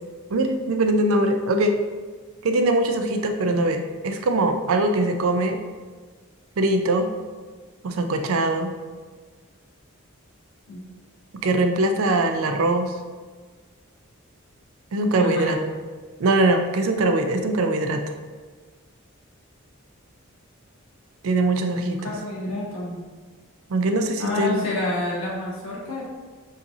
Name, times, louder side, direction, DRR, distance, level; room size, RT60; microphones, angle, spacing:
voice 1, 0.3-1.8 2.4-5.6 6.6-7.1 7.8-8.7 11.3-12.9 14.9-15.6 16.2-18.0 21.2-22.0 23.7-24.6, right 2 dB, 75° right, 6 dB, 0.5 m, -22 dB
voice 2, 15.2-15.6 21.8-23.0 24.2-26.0, left 2 dB, 70° left, -5 dB, 1.5 m, -28 dB
7.3 x 2.6 x 2.7 m, 1.5 s
head